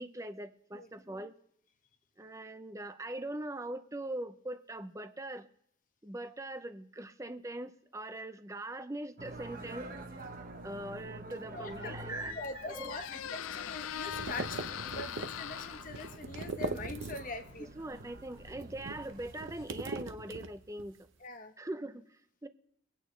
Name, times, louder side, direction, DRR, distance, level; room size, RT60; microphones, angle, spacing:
voice 1, 0.0-1.4 2.2-5.5 6.0-9.9 10.6-13.2 17.6-21.0 21.6-22.5, right 1 dB, 15° right, 11 dB, 0.5 m, -42 dB
sound 1, 9.2-19.5, right 2 dB, 40° right, 1.0 m, -49 dB
Squeak, 11.5-20.2, left 9 dB, 80° left, 0.4 m, -44 dB
voice 2, 11.5-17.7 21.2-21.5, left 2 dB, 40° left, 7 dB, 1.0 m, -43 dB
sound 2, 13.6-17.5 17.8-20.9, right 3 dB, 70° right, 0.7 m, -41 dB
24.0 x 8.8 x 3.2 m, 0.71 s
head